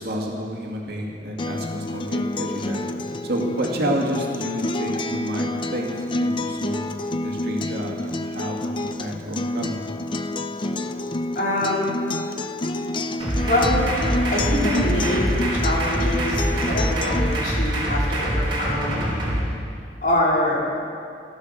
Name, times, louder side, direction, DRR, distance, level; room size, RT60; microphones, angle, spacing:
voice 1, 0.0-2.8 3.2-6.9 7.2-9.9, equal, 60° right, -1 dB, 2.3 m, -30 dB
Acoustic guitar, 1.4-17.4, left 2 dB, 25° left, 0.5 m, -28 dB
voice 2, 11.3-12.0 13.4-13.9 14.3-19.1 20.0-20.6, left 1 dB, 50° left, -4 dB, 3.2 m, -24 dB
sound 1, 13.2-19.4, equal, 30° right, 3.8 m, -24 dB
14.0 x 13.5 x 6.5 m, 2.4 s
head